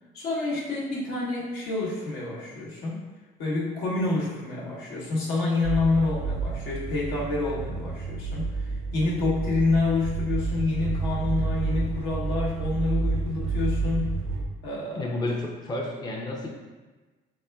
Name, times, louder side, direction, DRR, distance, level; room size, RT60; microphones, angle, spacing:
voice 1, 0.1-3.0 3.4-14.2 14.6-15.2, left 3 dB, 80° left, -5 dB, 1.2 m, -28 dB
sound 1, 5.6-14.4, right 4 dB, 75° right, 0.5 m, -29 dB
voice 2, 14.9-16.5, left 2 dB, 25° left, -2 dB, 0.5 m, -31 dB
4.1 x 3.4 x 2.3 m, 1.3 s
cardioid pair, 110°, 17 cm